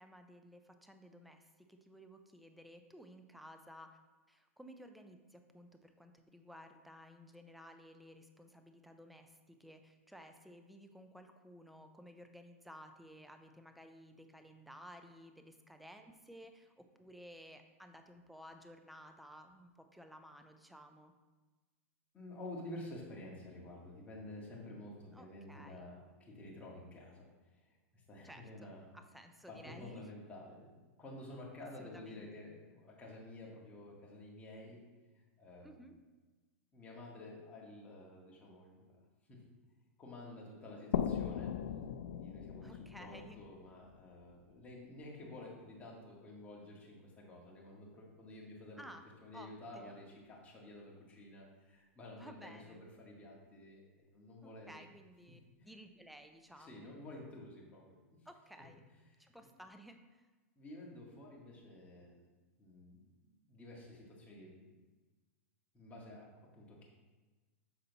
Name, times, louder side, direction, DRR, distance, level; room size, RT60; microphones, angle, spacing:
voice 1, 0.0-3.9 4.3-21.1 25.1-25.9 28.2-30.1 31.8-32.2 35.6-36.0 42.6-43.4 48.8-49.1 49.3-49.5 49.7-50.0 52.1-52.8 54.4-56.9 58.3-58.8 59.2-60.3, equal, ahead, 6 dB, 0.5 m, -55 dB
voice 2, 22.1-27.3 27.6-28.8 29.5-34.8 35.4-35.9 36.7-38.9 39.3-39.4 40.0-41.5 42.1-48.9 49.2-54.9 55.6-55.7 56.6-58.2 60.6-62.3 62.6-64.7 65.7-66.3 66.5-66.9, left 1 dB, 20° left, -3 dB, 1.7 m, -51 dB
sound 1, 40.9-44.4, left 9 dB, 75° left, 0.4 m, -39 dB
6.8 x 4.1 x 4.0 m, 1.3 s
hypercardioid pair, 130°, 7 cm